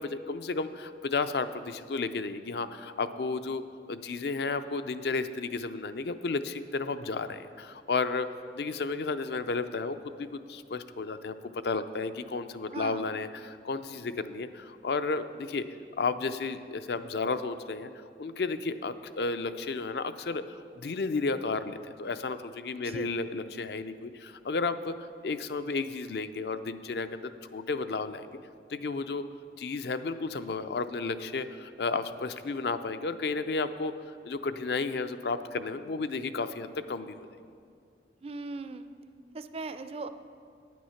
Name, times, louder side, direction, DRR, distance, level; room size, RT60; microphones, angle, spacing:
voice 1, 0.0-3.6 3.9-8.3 8.6-15.6 16.0-28.3 28.7-29.2 29.6-33.9 34.2-37.3, left 4 dB, 65° left, 11 dB, 0.5 m, -33 dB
voice 2, 12.7-13.1 22.8-23.1 38.2-38.9 39.3-40.1, right 3 dB, 35° right, 10 dB, 0.4 m, -38 dB
9.5 x 9.3 x 5.7 m, 2.3 s
head